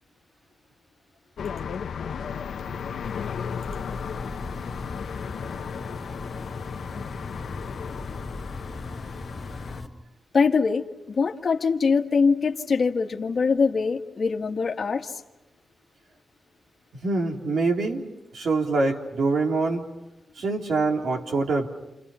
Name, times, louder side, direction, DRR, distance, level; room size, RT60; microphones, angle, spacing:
sound 1, 1.4-9.8, left 7 dB, 80° left, 0.9 m, -35 dB
sound 2, 3.0-9.9, left 2 dB, 10° left, 2.9 m, -38 dB
voice 1, 10.3-15.2, left 5 dB, 45° left, 2 dB, 1.6 m, -23 dB
voice 2, 17.0-18.0 18.3-19.8 20.4-21.7, right 3 dB, 70° right, 2 dB, 3.6 m, -24 dB
29.0 x 29.0 x 5.6 m, 0.95 s
wide cardioid pair, 170°, 0 cm